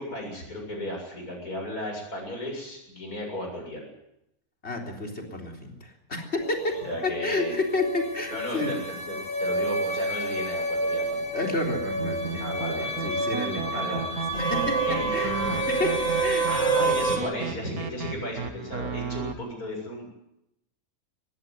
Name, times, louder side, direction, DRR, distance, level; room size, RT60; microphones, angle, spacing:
voice 1, 0.0-3.9 6.8-7.6 8.3-11.2 12.4-13.1 13.7-14.0 14.9-15.1 16.5-20.1, left 1 dB, 80° left, 1 dB, 8.0 m, -35 dB
voice 2, 4.6-8.8 11.3-14.1 14.4-14.8 15.1-15.3 15.7-16.5, left 2 dB, 45° left, 1 dB, 4.0 m, -31 dB
sound 1, 6.4-17.2, right 2 dB, 30° left, 2.5 m, -28 dB
sound 2, 11.6-19.3, right 5 dB, 80° right, 2.1 m, -34 dB
20.0 x 15.5 x 9.4 m, 0.84 s
omnidirectional pair, 1.6 m